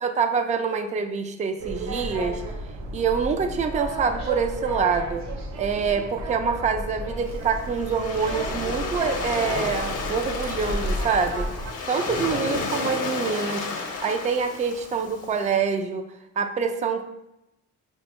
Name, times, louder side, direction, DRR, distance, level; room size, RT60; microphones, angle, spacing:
voice 1, 0.0-2.4 2.9-5.2 5.6-11.5 11.9-13.7 14.0-16.0 16.4-17.0, right 5 dB, 25° right, 6 dB, 0.3 m, -26 dB
sound 1, 1.6-11.7, right 1 dB, 65° right, 0.6 m, -33 dB
Waves surf, 7.2-15.5, left 4 dB, 55° left, 0.7 m, -32 dB
5.2 x 2.1 x 2.9 m, 0.87 s
cardioid pair, 90°, 30 cm